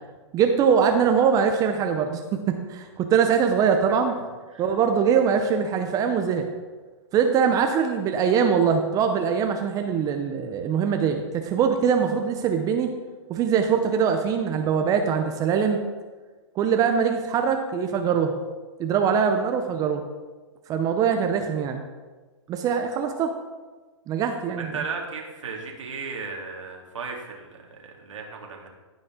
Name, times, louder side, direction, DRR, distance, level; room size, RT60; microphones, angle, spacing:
voice 1, 0.3-4.1 4.6-6.5 7.1-12.9 13.3-15.8 16.6-18.4 18.8-20.0 20.7-21.8 22.5-23.3 24.1-24.7, right 7 dB, 20° right, 5 dB, 0.6 m, -22 dB
voice 2, 24.6-28.7, right 4 dB, 85° right, 0 dB, 2.2 m, -35 dB
15.5 x 5.3 x 3.7 m, 1.3 s
hypercardioid pair, 135°, 16 cm